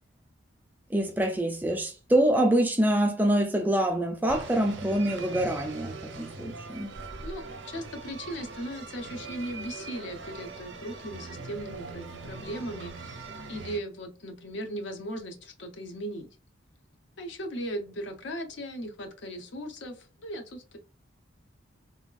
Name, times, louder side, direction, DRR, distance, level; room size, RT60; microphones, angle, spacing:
voice 1, 0.9-6.9, right 1 dB, 10° right, 0.4 m, -25 dB
sound 1, 4.3-13.8, right 3 dB, 60° right, 0.5 m, -41 dB
voice 2, 7.2-13.2 13.5-16.3 17.2-20.8, equal, 65° left, 0.6 m, -38 dB
3.3 x 2.3 x 2.3 m
head